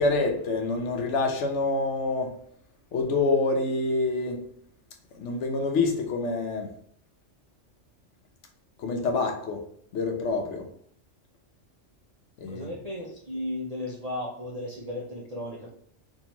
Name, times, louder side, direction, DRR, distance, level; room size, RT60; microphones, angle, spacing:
voice 1, 0.0-2.3 2.9-4.4 5.1-6.7 8.8-9.6 9.9-10.6 12.4-12.7, left 3 dB, 70° left, 3 dB, 0.9 m, -26 dB
voice 2, 12.5-15.7, left 1 dB, 55° right, -3 dB, 0.4 m, -35 dB
3.7 x 2.5 x 2.9 m, 0.63 s
omnidirectional pair, 1.3 m